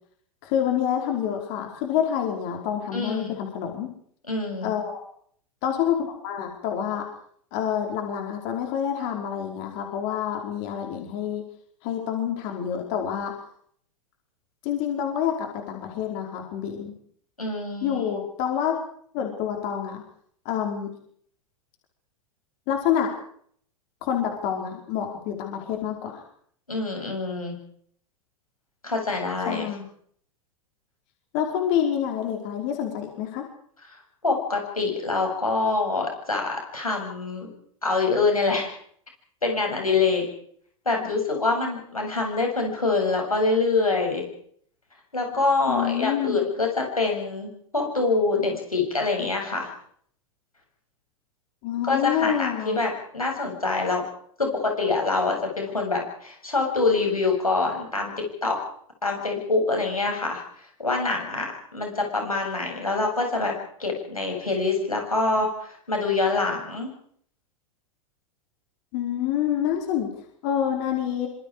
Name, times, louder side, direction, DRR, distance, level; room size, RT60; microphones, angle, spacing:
voice 1, 0.4-3.9 4.6-5.0 5.6-7.0 7.5-11.4 11.8-13.3 14.6-16.9 17.8-18.8 19.1-20.0 20.4-20.9 22.7-23.1 24.0-26.2 29.4-29.8 31.3-33.4 45.7-46.4 51.6-52.8 68.9-70.1 70.4-71.3, left 9 dB, 50° left, 2 dB, 5.2 m, -27 dB
voice 2, 2.9-3.4 4.3-4.7 17.4-18.0 26.7-27.5 28.8-29.6 34.2-37.5 37.8-38.7 39.4-40.3 40.9-44.2 45.1-49.7 51.8-54.0 54.4-58.6 59.0-60.4 60.8-63.5 63.8-66.9, left 3 dB, 90° left, 2 dB, 7.6 m, -25 dB
26.5 x 26.0 x 5.0 m, 0.63 s
figure-of-eight pair, 95°, 18 cm